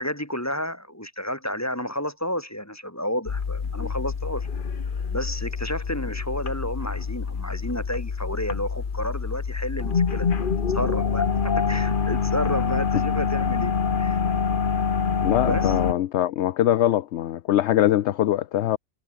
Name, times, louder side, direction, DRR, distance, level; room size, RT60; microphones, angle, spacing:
voice 1, 0.0-4.5 5.1-10.5 10.7-14.2 15.4-15.8, equal, 10° left, 2.9 m, -31 dB
sound 1, 3.3-15.9, left 5 dB, 40° left, 1.2 m, -26 dB
voice 2, 15.2-18.8, left 12 dB, 65° left, 0.8 m, -22 dB
omnidirectional pair, 1.5 m